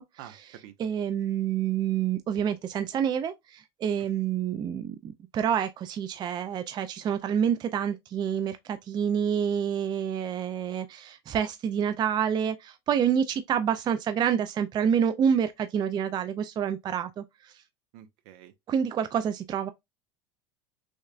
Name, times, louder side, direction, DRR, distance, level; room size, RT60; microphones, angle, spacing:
voice 1, 0.2-0.8 4.0-4.1 17.9-18.5, right 11 dB, 65° right, 0.7 m, -48 dB
voice 2, 0.8-17.5 18.7-19.7, right 8 dB, 25° right, 0.4 m, -28 dB
6.2 x 2.3 x 2.4 m
supercardioid pair, 115°, 16 cm